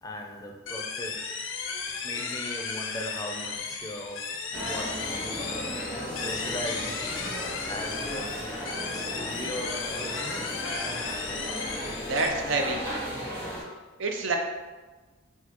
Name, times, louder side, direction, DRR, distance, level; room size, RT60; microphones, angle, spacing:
voice 1, 0.0-1.2 2.0-4.2 4.6-5.3 5.6-5.7 6.2-7.1 7.7-8.5 8.8-10.4, left 1 dB, 20° left, 2 dB, 0.4 m, -38 dB
sound 1, 0.7-12.3, left 5 dB, 75° left, 0.5 m, -35 dB
sound 2, 4.5-13.6, equal, 15° right, 1.2 m, -35 dB
voice 2, 11.9-12.8 14.0-14.4, right 3 dB, 75° right, 3 dB, 0.6 m, -27 dB
6.1 x 2.3 x 2.9 m, 1.3 s
head